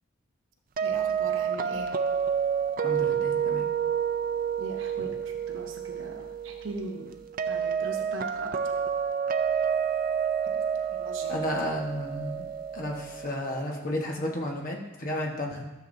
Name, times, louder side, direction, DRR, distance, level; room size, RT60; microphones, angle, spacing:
sound 1, 0.8-13.6, right 7 dB, 40° right, 0.4 m, -29 dB
voice 1, 0.8-1.9 4.6-7.2 7.5-8.6 10.4-10.6 10.9-11.5, right 2 dB, 65° right, 3 dB, 0.9 m, -40 dB
voice 2, 2.8-3.7 5.0-5.1 11.3-12.5 12.7-15.7, left 1 dB, 40° left, 0 dB, 1.2 m, -33 dB
12.5 x 7.1 x 2.7 m, 1.1 s
head